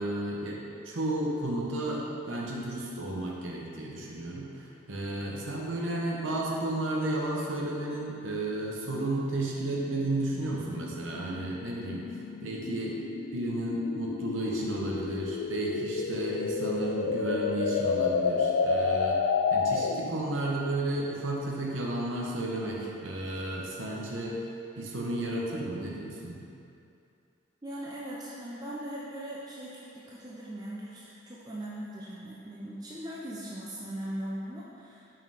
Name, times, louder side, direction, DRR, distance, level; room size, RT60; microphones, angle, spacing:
voice 1, 0.0-13.0 13.3-19.2 19.5-24.4 24.8-26.4, right 1 dB, 85° right, -3 dB, 0.9 m, -33 dB
sound 1, 8.9-20.2, left 5 dB, 90° left, 0.3 m, -31 dB
voice 2, 27.6-35.1, right 1 dB, 20° right, -6 dB, 0.5 m, -39 dB
5.8 x 4.8 x 3.4 m, 2.6 s
head